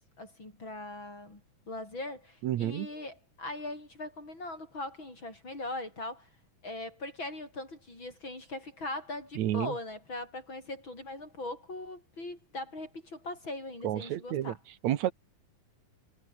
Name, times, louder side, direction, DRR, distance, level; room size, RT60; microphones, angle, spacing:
voice 1, 0.2-1.4 1.7-6.3 6.6-14.6, left 2 dB, 35° left, 8.5 m, -40 dB
voice 2, 2.4-2.9 9.4-9.8 13.8-14.6 14.8-15.1, right 12 dB, 65° right, 2.2 m, -30 dB
omnidirectional pair, 3.8 m